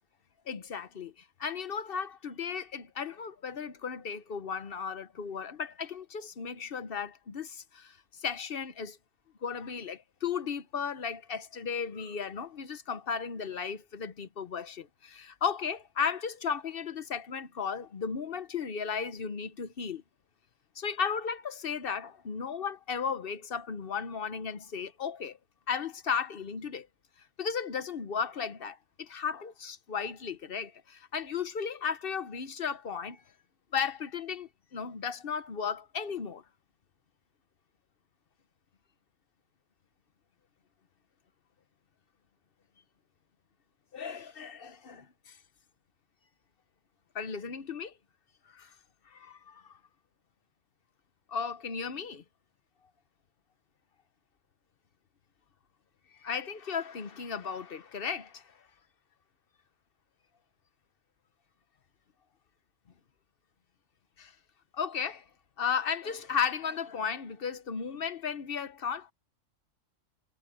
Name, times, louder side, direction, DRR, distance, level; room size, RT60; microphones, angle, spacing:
voice 1, 0.5-9.0 9.4-20.0 20.8-25.4 25.7-26.9 27.4-33.2 33.7-36.4 43.9-45.4 47.1-47.9 48.5-48.7 49.1-49.8 51.3-52.2 56.2-58.6 64.2-64.3 64.7-65.2 65.6-69.1, left 6 dB, 50° left, 1.1 m, -35 dB
omnidirectional pair, 1.3 m